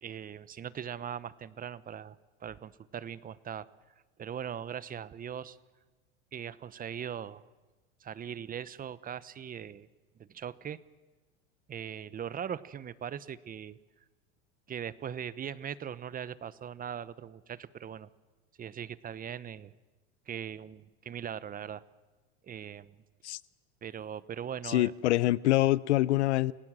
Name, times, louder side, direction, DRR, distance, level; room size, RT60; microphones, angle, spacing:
voice 1, 0.0-3.7 4.2-5.6 6.3-7.4 8.0-9.9 10.2-10.8 11.7-13.8 14.7-18.1 18.6-19.7 20.3-21.8 22.4-23.0 23.8-24.9, right 8 dB, 25° right, 18 dB, 0.9 m, -40 dB
voice 2, 24.6-26.5, left 16 dB, 90° left, 21 dB, 0.8 m, -25 dB
29.5 x 18.0 x 7.5 m, 1.2 s
supercardioid pair, 110°, 33 cm